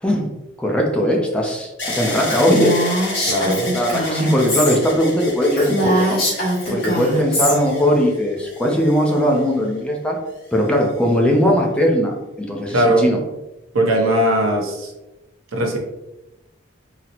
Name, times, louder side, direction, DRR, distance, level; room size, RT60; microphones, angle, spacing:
voice 1, 0.6-2.7 3.7-6.2 6.7-10.2 10.5-13.2, equal, 5° left, -1 dB, 0.5 m, -19 dB
sound 1, 1.8-9.8 10.5-11.2, left 2 dB, 65° left, 1.2 m, -32 dB
Female speech woman speaking, 2.3-4.8 5.1-5.2 5.5-7.5, equal, 50° left, 1.5 m, -21 dB
voice 2, 3.3-3.7 12.7-13.2 13.7-14.9 15.5-15.8, right 1 dB, 90° right, 1 dB, 0.7 m, -18 dB
4.1 x 2.1 x 2.8 m, 0.98 s
head